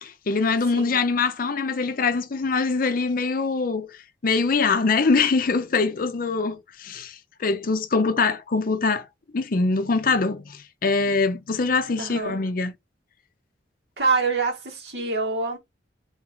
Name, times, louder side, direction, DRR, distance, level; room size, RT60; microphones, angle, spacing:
voice 1, 0.0-9.1 9.3-12.7, left 4 dB, 50° left, 0.5 m, -23 dB
voice 2, 0.7-1.0 12.0-12.4 14.0-15.6, right 4 dB, 65° right, 2.5 m, -25 dB
3.9 x 3.7 x 3.1 m
head